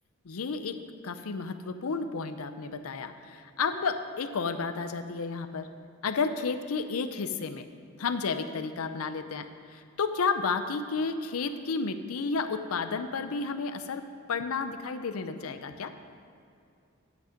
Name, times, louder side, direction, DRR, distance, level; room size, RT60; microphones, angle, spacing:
voice 1, 0.2-0.8 1.0-5.7 6.0-7.7 8.0-14.0 14.3-15.9, left 4 dB, 90° left, 9 dB, 0.6 m, -32 dB
8.5 x 8.2 x 5.0 m, 2.5 s
head